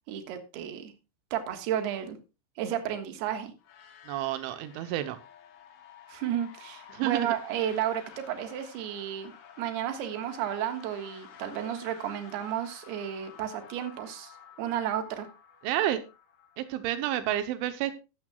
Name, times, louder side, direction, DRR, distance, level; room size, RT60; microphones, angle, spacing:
voice 1, 0.1-0.9 1.3-2.2 2.6-3.5 6.1-14.3 14.6-15.3, right 10 dB, 70° right, 7 dB, 3.4 m, -32 dB
sound 1, 3.6-17.3, left 8 dB, 90° left, 4.7 m, -52 dB
voice 2, 4.1-5.2 6.9-7.4 15.6-16.0 16.6-18.0, right 13 dB, 85° right, 10 dB, 3.3 m, -30 dB
15.0 x 12.0 x 2.3 m, 0.29 s
omnidirectional pair, 5.3 m